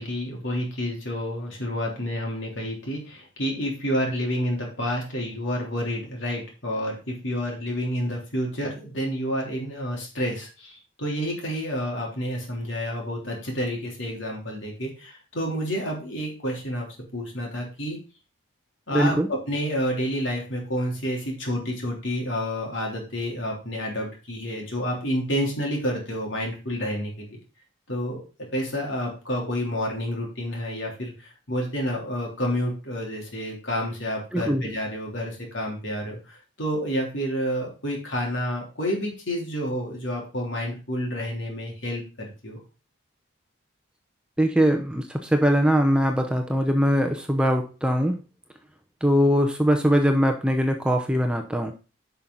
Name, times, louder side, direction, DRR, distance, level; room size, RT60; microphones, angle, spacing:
voice 1, 0.0-18.0 18.9-27.4 27.9-28.2 28.5-42.6, equal, 60° left, -1 dB, 3.4 m, -29 dB
voice 2, 18.9-19.3 34.3-34.6 44.4-48.2 49.0-51.7, equal, 5° right, 4 dB, 0.7 m, -21 dB
10.5 x 5.7 x 3.9 m, 0.33 s
head